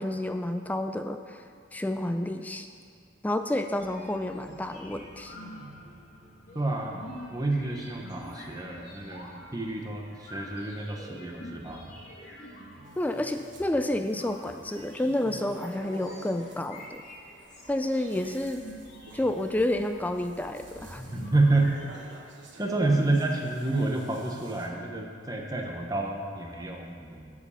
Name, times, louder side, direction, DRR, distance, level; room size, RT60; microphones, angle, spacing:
voice 1, 0.0-1.4 1.7-2.7 3.2-5.4 13.0-17.0 17.7-18.6 19.1-21.0 22.8-22.9, left 1 dB, 10° left, 7 dB, 0.3 m, -30 dB
sound 1, 3.8-21.8, equal, 40° left, 2.0 m, -47 dB
voice 2, 6.5-7.0 7.3-11.8 21.1-21.8 22.6-27.3, right 2 dB, 20° right, 1 dB, 0.9 m, -29 dB
sound 2, 12.9-13.7 14.0-16.6 17.6-24.7, right 1 dB, 70° right, 1.1 m, -50 dB
13.0 x 4.9 x 5.6 m, 2.1 s
head